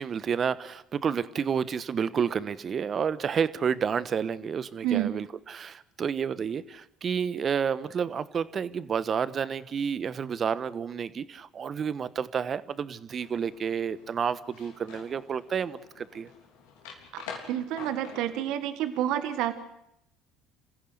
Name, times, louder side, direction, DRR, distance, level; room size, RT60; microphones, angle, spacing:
voice 1, 0.0-16.3, right 7 dB, 40° right, 16 dB, 1.2 m, -30 dB
sound 1, 13.2-18.4, left 6 dB, 75° left, 3.7 m, -47 dB
voice 2, 17.1-19.5, right 11 dB, 65° right, 11 dB, 1.5 m, -29 dB
27.5 x 15.5 x 8.1 m, 0.80 s
hypercardioid pair, 65°, 0 cm